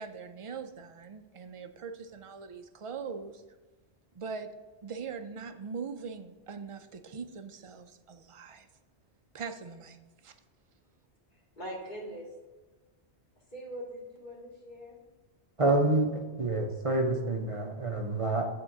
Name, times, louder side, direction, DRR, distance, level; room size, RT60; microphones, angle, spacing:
voice 1, 0.0-3.4 4.1-4.5 4.8-8.7 9.3-10.0 10.2-10.3, right 5 dB, 55° right, 7 dB, 0.3 m, -41 dB
voice 2, 11.3-12.3 13.5-15.0, equal, 45° left, -4 dB, 2.1 m, -42 dB
voice 3, 15.6-18.5, right 2 dB, 35° right, 2 dB, 0.8 m, -27 dB
7.6 x 3.6 x 6.4 m, 1.2 s
omnidirectional pair, 1.1 m